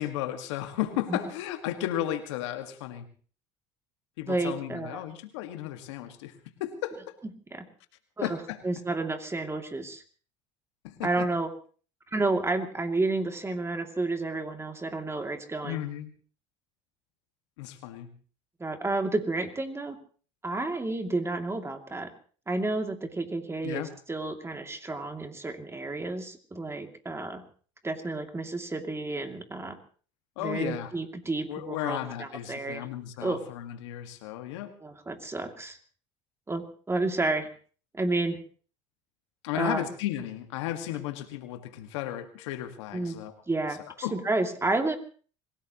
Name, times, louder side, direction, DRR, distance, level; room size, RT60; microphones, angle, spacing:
voice 1, 0.0-3.1 4.2-6.3 6.6-7.2 8.2-8.6 10.8-11.3 15.6-16.1 17.6-18.1 23.6-23.9 30.4-30.9 31.5-34.7 39.4-43.3 43.8-44.2, left 13 dB, 85° left, 7 dB, 1.9 m, -34 dB
voice 2, 4.3-5.0 7.5-7.6 8.2-8.4 8.6-10.0 11.0-11.5 12.1-15.8 18.6-20.0 20.4-22.1 22.5-27.4 27.8-29.8 30.4-32.9 33.2-33.4 34.8-35.8 36.5-37.5 37.9-38.4 39.5-39.8 42.9-43.2 43.5-45.0, right 2 dB, 20° right, 5 dB, 2.7 m, -31 dB
26.0 x 17.0 x 3.1 m, 0.41 s
supercardioid pair, 80°, 15 cm